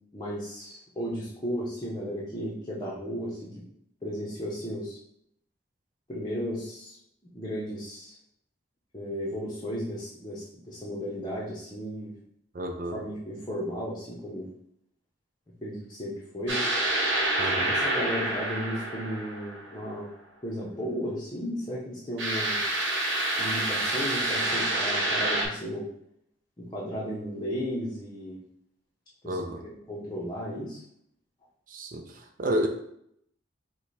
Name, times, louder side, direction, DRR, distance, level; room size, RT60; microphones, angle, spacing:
voice 1, 0.1-3.5 4.0-5.0 6.1-7.0 7.2-8.1 8.9-12.1 12.9-14.5 15.6-16.7 17.5-20.1 20.4-22.6 23.4-25.9 26.6-28.4 29.2-29.4 29.9-30.8, equal, 20° left, -7 dB, 0.8 m, -34 dB
voice 2, 12.5-13.0 17.4-17.8 29.3-29.6 31.7-32.7, right 1 dB, 45° right, 4 dB, 0.5 m, -31 dB
sound 1, 16.5-19.9 22.2-25.5, right 1 dB, 80° right, 1.0 m, -28 dB
4.9 x 2.3 x 4.1 m, 0.70 s
head